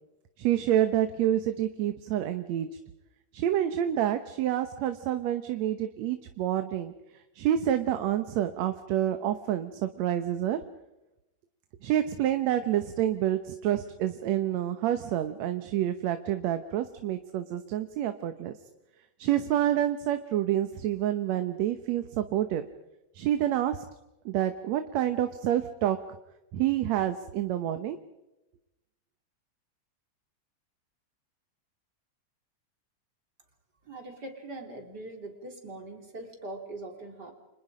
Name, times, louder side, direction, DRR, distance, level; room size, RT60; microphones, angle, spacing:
voice 1, 0.4-2.7 3.3-6.9 7.4-10.6 11.8-18.5 19.2-22.7 23.1-23.8 24.3-26.0 26.5-28.0, right 11 dB, 70° right, 8 dB, 2.2 m, -28 dB
voice 2, 33.9-37.3, right 2 dB, 35° right, 3 dB, 4.0 m, -42 dB
30.0 x 26.5 x 5.1 m, 0.95 s
omnidirectional pair, 3.4 m